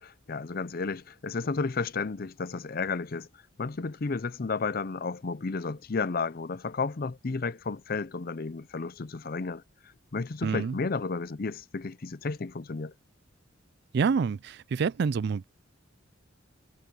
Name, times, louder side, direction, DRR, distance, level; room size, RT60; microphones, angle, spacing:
voice 1, 0.0-3.3 3.6-9.6 10.1-12.9, left 4 dB, 50° left, 0.6 m, -32 dB
voice 2, 10.4-10.8 13.9-15.4, right 5 dB, 55° right, 0.3 m, -27 dB
head